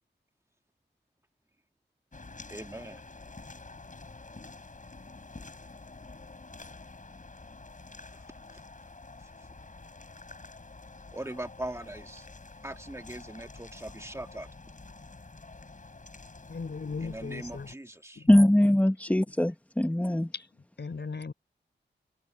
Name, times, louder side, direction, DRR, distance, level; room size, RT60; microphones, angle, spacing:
sound 1, 2.1-17.8, left 3 dB, 45° left, 5.6 m, -48 dB
voice 1, 2.5-3.0 11.1-12.3 12.6-14.5 17.0-18.2, right 1 dB, 15° right, 1.7 m, -40 dB
voice 2, 16.5-17.7 18.1-18.3 20.3-21.3, left 4 dB, 65° left, 4.8 m, -38 dB
voice 3, 18.3-20.3, left 1 dB, 5° left, 1.3 m, -22 dB
wide cardioid pair, 65°, 19 cm